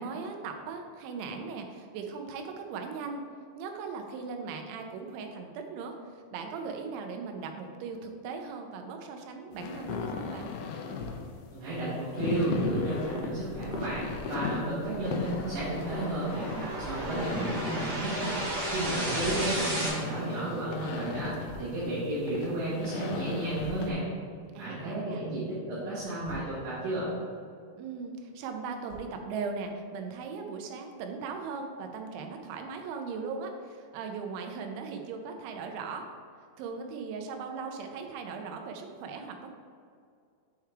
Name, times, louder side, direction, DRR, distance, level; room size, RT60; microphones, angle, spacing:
voice 1, 0.0-3.2 3.6-10.5 17.0-17.5 24.6-25.3 27.8-36.1 36.6-39.5, right 5 dB, 90° right, 4 dB, 3.1 m, -38 dB
sound 1, 9.5-23.9, left 6 dB, 90° left, 2.9 m, -38 dB
Thump thud, 11.0-11.3 14.1-14.3 16.8-17.1 19.2-19.5 21.5-21.8 23.6-23.9 26.0-26.6 28.9-29.2, left 2 dB, 65° left, 2.9 m, -44 dB
voice 2, 11.5-18.3 18.7-24.0 24.6-27.1, right 1 dB, 70° right, -12 dB, 3.7 m, -32 dB
sound 2, 13.3-19.9, right 1 dB, 55° right, 2.2 m, -35 dB
8.3 x 4.6 x 3.5 m, 2.3 s
omnidirectional pair, 5.2 m